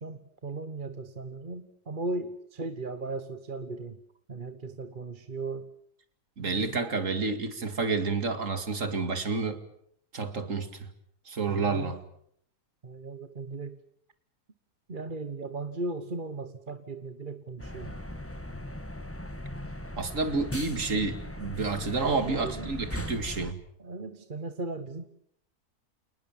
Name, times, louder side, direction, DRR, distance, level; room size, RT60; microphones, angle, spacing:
voice 1, 0.0-4.0 4.3-5.7 6.4-6.8 11.5-12.0 12.8-13.8 14.9-17.9 22.0-22.8 23.8-25.1, right 3 dB, 35° right, 10 dB, 1.3 m, -37 dB
voice 2, 6.4-9.6 10.1-10.7 11.3-12.0 20.0-23.6, right 4 dB, 55° right, 10 dB, 2.5 m, -29 dB
sound 1, 17.6-23.5, left 1 dB, 10° left, 1.3 m, -38 dB
28.5 x 19.5 x 7.4 m, 0.69 s
omnidirectional pair, 1.6 m